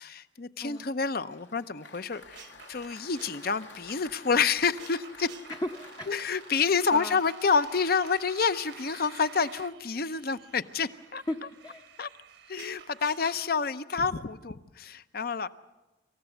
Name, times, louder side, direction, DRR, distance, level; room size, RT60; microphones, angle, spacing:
voice 1, 0.0-5.3 6.1-11.2 12.0-12.1 12.5-15.5, left 5 dB, 55° left, 13 dB, 0.7 m, -28 dB
voice 2, 0.6-0.9 5.6-6.2 6.9-7.2 11.3-11.9, left 1 dB, 20° left, 4 dB, 0.7 m, -36 dB
Applause, 0.7-7.9, left 3 dB, 75° left, 1.7 m, -51 dB
sound 1, 2.1-13.5, right 7 dB, 70° right, 1.1 m, -51 dB
26.0 x 15.0 x 8.0 m, 1.1 s
head